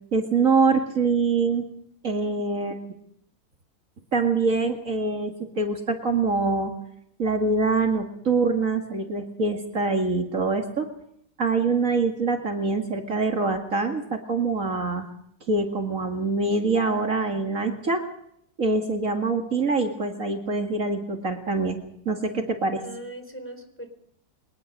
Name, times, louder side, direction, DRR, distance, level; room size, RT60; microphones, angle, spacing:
voice 1, 0.1-1.7 2.0-2.8 4.1-6.7 7.2-10.9 11.4-15.1 15.5-18.0 18.6-21.8 22.1-22.8, right 3 dB, 55° right, 4 dB, 2.4 m, -24 dB
voice 2, 22.8-23.9, right 1 dB, 5° left, 6 dB, 4.1 m, -41 dB
23.0 x 20.0 x 6.6 m, 0.72 s
omnidirectional pair, 1.7 m